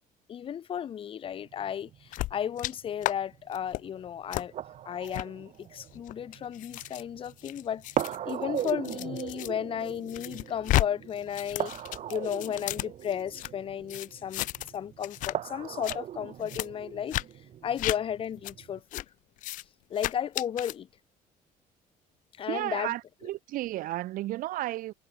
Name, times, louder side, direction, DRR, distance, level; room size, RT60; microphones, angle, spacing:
voice 1, 0.3-4.5 4.8-11.7 12.1-14.4 14.7-17.2 17.6-19.0 19.9-20.9 22.4-22.9, left 9 dB, 35° left, 1.0 m, -34 dB
sound 1, 1.2-18.8, right 11 dB, 50° right, 4.1 m, -39 dB
sound 2, 2.1-2.7 3.0-3.1 3.5-3.8 4.3-4.5 5.0-5.3 5.9-9.5 9.9-10.9 11.1-13.5 13.9-14.8 15.0-15.3 15.7-16.0 16.5-16.7 17.1-17.3 17.8-18.0 18.4-18.5 18.9-19.1 19.4-19.6 20.0-20.7, left 17 dB, 60° left, 0.4 m, -33 dB
voice 2, 22.5-24.9, right 16 dB, 70° right, 1.5 m, -33 dB
cardioid pair, 155°, 15 cm